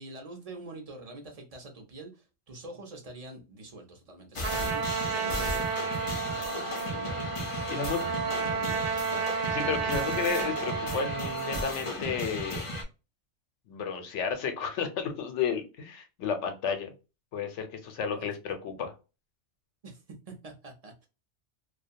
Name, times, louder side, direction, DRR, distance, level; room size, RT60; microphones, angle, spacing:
voice 1, 0.0-6.8 7.7-9.0 18.0-18.3 19.8-21.1, right 2 dB, 40° right, 0.6 m, -46 dB
sound 1, 4.4-12.8, left 1 dB, 40° left, 0.5 m, -35 dB
Trumpet, 4.4-11.8, right 6 dB, 70° right, 0.8 m, -32 dB
voice 2, 7.7-8.0 9.5-12.7 13.7-16.9 17.3-18.9, left 6 dB, 80° left, 1.0 m, -32 dB
2.4 x 2.2 x 2.6 m
omnidirectional pair, 1.2 m